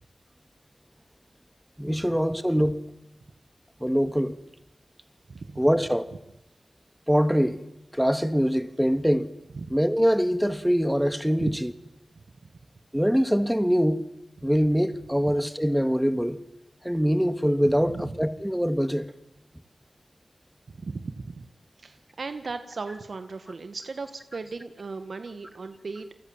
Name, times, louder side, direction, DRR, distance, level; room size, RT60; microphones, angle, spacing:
voice 1, 1.8-2.8 3.8-4.4 5.6-6.1 7.1-7.6 7.9-9.3 9.7-11.7 12.9-14.1 14.4-16.4 16.8-19.1, equal, 5° right, 2.3 m, -23 dB
voice 2, 5.3-5.6 9.5-9.7 11.4-11.5 17.8-18.1 20.7-21.5 21.8-26.1, right 4 dB, 75° right, 1.8 m, -36 dB
30.0 x 24.0 x 7.4 m
wide cardioid pair, 55°, 0 cm